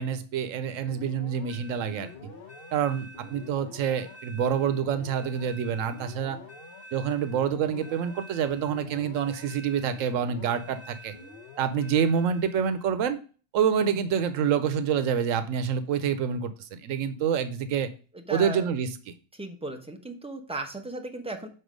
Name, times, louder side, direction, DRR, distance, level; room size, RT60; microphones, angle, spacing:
voice 1, 0.0-2.1 2.7-6.4 6.9-11.1 11.6-13.2 13.5-17.9 18.3-18.9, right 7 dB, 90° right, 1.0 m, -27 dB
sound 1, 0.8-12.9, left 1 dB, 50° left, 1.2 m, -47 dB
voice 2, 18.1-18.7 19.3-21.5, right 2 dB, 5° right, 0.8 m, -36 dB
6.6 x 4.2 x 5.1 m
omnidirectional pair, 1.3 m